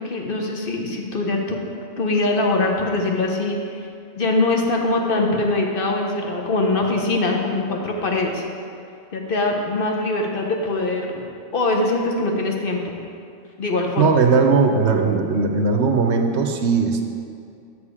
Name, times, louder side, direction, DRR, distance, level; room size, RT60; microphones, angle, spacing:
voice 1, 0.0-1.6 2.0-3.6 4.2-8.4 9.1-11.2 11.5-13.0 13.6-14.1, left 2 dB, 50° left, 1 dB, 0.9 m, -22 dB
voice 2, 14.0-17.0, right 4 dB, 70° right, 4 dB, 0.9 m, -18 dB
7.4 x 6.2 x 4.8 m, 2.4 s
omnidirectional pair, 1.2 m